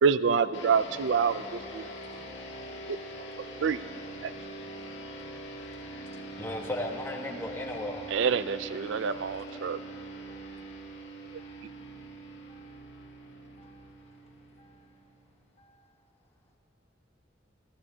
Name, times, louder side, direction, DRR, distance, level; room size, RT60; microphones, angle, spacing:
voice 1, 0.0-1.8 2.9-3.0 3.6-3.8 4.2-4.3 8.1-9.8, right 6 dB, 75° right, 15 dB, 0.4 m, -26 dB
sound 1, 0.5-15.3, right 1 dB, 70° left, 1.6 m, -43 dB
voice 2, 6.3-8.1, left 1 dB, 10° left, 0 dB, 1.2 m, -35 dB
voice 3, 9.6-10.0 10.3-10.7 11.4-11.6 12.5-12.9 13.6-13.9 14.6-14.8 15.6-15.8, right 1 dB, 35° left, 2 dB, 1.3 m, -63 dB
30.0 x 14.5 x 2.8 m, 2.9 s
head